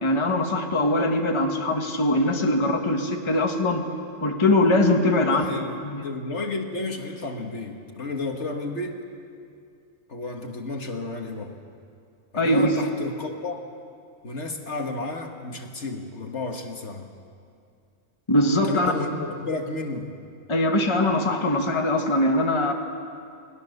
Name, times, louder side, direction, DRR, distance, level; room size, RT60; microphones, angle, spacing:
voice 1, 0.0-3.8 4.2-5.4 5.8-6.0 12.4-12.8 18.3-18.9 20.5-22.7, left 1 dB, 20° left, 2 dB, 1.6 m, -22 dB
voice 2, 5.2-9.0 10.1-11.6 12.3-13.7 14.2-17.1 18.6-20.1, left 2 dB, 60° left, 3 dB, 2.0 m, -32 dB
29.5 x 20.0 x 6.7 m, 2.4 s
omnidirectional pair, 1.4 m